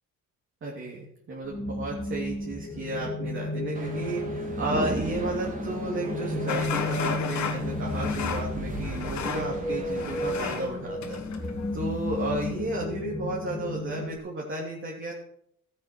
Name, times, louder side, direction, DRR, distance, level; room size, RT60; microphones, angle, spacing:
voice 1, 0.6-15.1, right 2 dB, 40° right, -3 dB, 3.0 m, -33 dB
sound 1, 1.4-14.2, left 1 dB, 15° left, 3.4 m, -33 dB
sound 2, 3.7-10.6, right 2 dB, 25° right, 2.9 m, -37 dB
sound 3, 6.5-12.8, left 7 dB, 70° left, 1.8 m, -35 dB
13.5 x 8.0 x 6.1 m, 0.70 s
cardioid pair, 90°, 30 cm